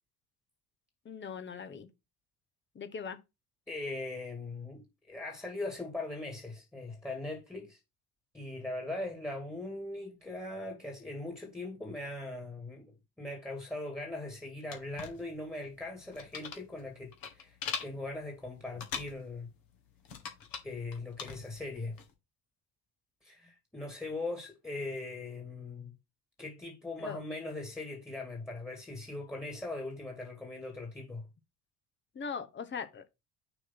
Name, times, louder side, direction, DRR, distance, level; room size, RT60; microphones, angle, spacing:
voice 1, 1.0-1.9 2.7-3.2 27.0-27.2 32.1-33.1, left 6 dB, 25° left, 1.1 m, -40 dB
voice 2, 3.7-7.8 8.3-19.5 20.6-22.0 23.2-25.9 26.4-31.3, left 2 dB, 5° left, 2.0 m, -40 dB
sound 1, 14.7-22.1, left 6 dB, 50° left, 1.8 m, -43 dB
6.3 x 3.1 x 5.8 m
figure-of-eight pair, 55°, 44 cm